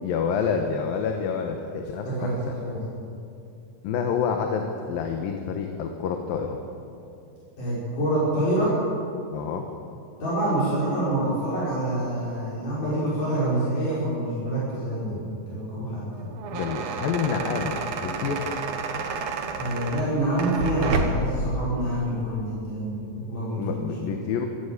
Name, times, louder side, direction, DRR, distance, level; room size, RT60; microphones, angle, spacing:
voice 1, 0.0-2.5 3.8-6.6 9.3-9.6 16.5-18.5 23.6-24.5, left 6 dB, 90° left, 4 dB, 3.0 m, -28 dB
voice 2, 2.1-2.8 7.6-8.7 10.2-16.3 19.6-23.9, right 1 dB, 65° left, -9 dB, 7.0 m, -26 dB
sound 1, 16.2-21.4, right 3 dB, 60° right, 2.2 m, -30 dB
26.0 x 12.5 x 8.2 m, 2.6 s
omnidirectional pair, 4.0 m